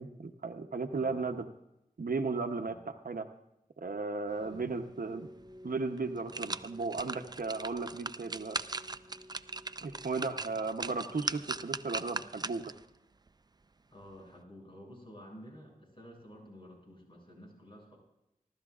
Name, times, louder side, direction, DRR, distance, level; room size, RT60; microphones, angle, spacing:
voice 1, 0.0-1.5 2.0-3.3 3.8-5.3 5.6-8.6 9.8-12.7, right 4 dB, 80° right, 7 dB, 0.8 m, -35 dB
voice 2, 0.9-1.4 2.6-2.8 4.3-4.6 13.9-18.0, equal, 35° left, -2 dB, 7.1 m, -52 dB
sound 1, 4.5-11.9, equal, 5° right, 1.4 m, -54 dB
sound 2, 5.4-5.5 6.0-12.8 13.3-13.4, right 3 dB, 30° right, 0.4 m, -39 dB
29.0 x 13.0 x 2.4 m, 0.86 s
wide cardioid pair, 65°, 15 cm